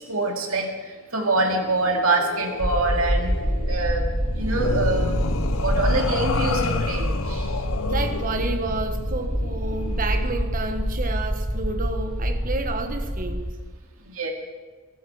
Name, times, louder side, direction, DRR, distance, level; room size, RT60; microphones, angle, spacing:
voice 1, 0.1-3.3 3.7-4.1 4.3-5.2 5.6-7.6 14.0-14.3, right 2 dB, 70° right, 2 dB, 2.4 m, -25 dB
sound 1, 1.4-10.3, left 4 dB, 75° left, 0.8 m, -31 dB
sound 2, 2.6-13.5, equal, 15° right, 1.1 m, -26 dB
voice 2, 7.9-13.4, right 3 dB, 40° right, 7 dB, 1.3 m, -30 dB
21.0 x 12.5 x 4.8 m, 1.4 s
head